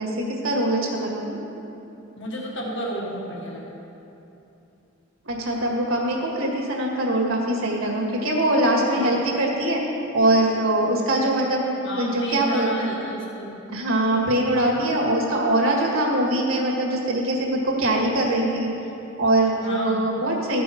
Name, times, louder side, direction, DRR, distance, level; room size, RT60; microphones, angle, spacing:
voice 1, 0.0-1.4 5.2-9.8 10.1-11.6 12.0-12.9 13.7-18.7 19.2-20.6, right 1 dB, 70° right, -1 dB, 1.8 m, -22 dB
voice 2, 2.2-3.7 8.9-9.1 11.8-13.5 19.6-20.1, equal, 60° left, -3 dB, 1.7 m, -32 dB
14.0 x 6.1 x 5.1 m, 2.9 s
head